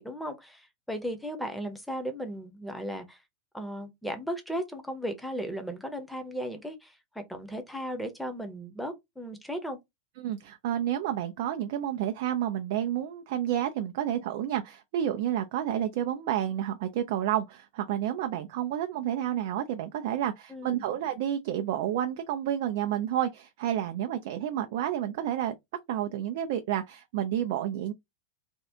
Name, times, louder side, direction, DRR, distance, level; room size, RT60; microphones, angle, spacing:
voice 1, 0.0-3.2 3.5-9.8 20.5-20.8, equal, ahead, 0.8 m, -36 dB
voice 2, 10.2-25.6 25.9-27.9, right 11 dB, 50° right, 0.4 m, -30 dB
3.4 x 2.3 x 2.8 m
figure-of-eight pair, 90°, 0 cm